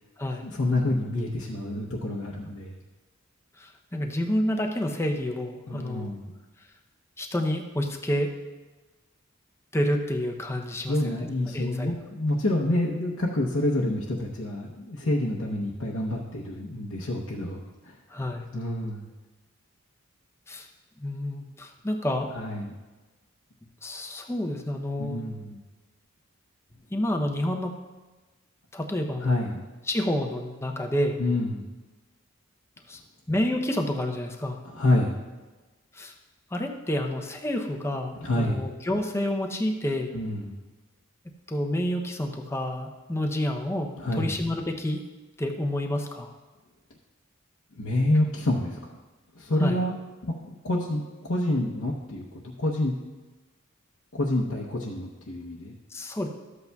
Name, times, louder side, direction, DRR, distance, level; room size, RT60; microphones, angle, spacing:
voice 1, 0.4-2.7 5.7-6.4 10.9-17.9 18.5-19.1 22.3-22.7 25.0-25.6 29.2-29.6 31.2-31.7 34.6-35.1 38.2-38.6 40.1-40.6 44.0-44.3 47.8-49.0 49.4-50.0 50.2-52.9 54.1-55.8, left 1 dB, 70° left, -4 dB, 0.8 m, -28 dB
voice 2, 3.6-6.1 7.2-8.4 9.7-11.0 11.5-12.0 18.1-18.5 20.5-20.7 21.0-22.3 23.8-25.3 26.9-27.8 28.7-29.4 29.9-31.2 32.9-33.0 33.3-34.6 35.9-36.1 36.5-40.1 41.5-45.0 45.4-46.3 49.6-49.8 55.9-56.3, left 1 dB, 10° left, 3 dB, 0.6 m, -29 dB
13.0 x 8.1 x 2.3 m, 1.2 s
head